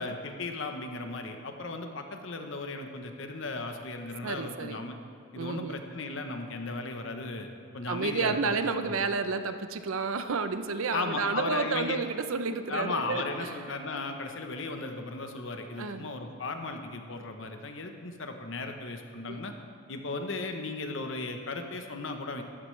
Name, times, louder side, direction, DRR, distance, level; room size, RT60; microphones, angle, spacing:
voice 1, 0.0-5.0 5.3-8.5 8.9-9.0 10.9-12.0 12.7-19.5 19.9-22.4, left 3 dB, 65° left, 5 dB, 0.9 m, -36 dB
voice 2, 4.2-4.8 5.4-5.8 7.9-13.5 15.8-16.1 19.3-19.4, right 4 dB, 80° right, 10 dB, 0.6 m, -31 dB
14.0 x 11.0 x 3.2 m, 2.4 s
head